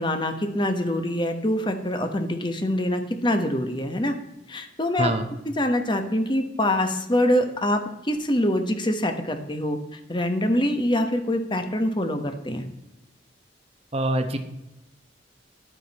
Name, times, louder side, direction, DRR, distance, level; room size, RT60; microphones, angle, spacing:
voice 1, 0.0-4.2 4.5-5.1 5.4-12.6, left 1 dB, 25° left, 6 dB, 1.2 m, -25 dB
voice 2, 13.9-14.4, right 1 dB, 30° right, 5 dB, 0.9 m, -24 dB
11.0 x 9.7 x 4.2 m, 0.90 s
head